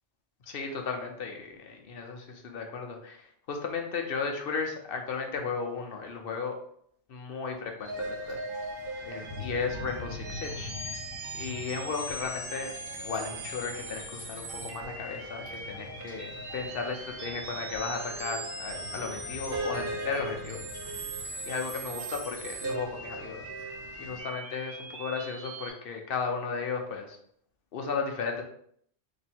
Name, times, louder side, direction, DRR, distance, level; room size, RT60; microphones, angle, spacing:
voice 1, 0.5-6.6 7.1-8.4 9.1-10.9 11.3-21.0 21.5-23.7 24.0-27.2 27.7-28.4, left 5 dB, 55° left, 3 dB, 0.8 m, -35 dB
sound 1, 7.8-25.7, right 2 dB, 55° right, 0.9 m, -39 dB
Rain, 7.9-24.2, left 2 dB, 75° right, 1.5 m, -46 dB
3.1 x 2.7 x 4.2 m, 0.64 s
omnidirectional pair, 1.2 m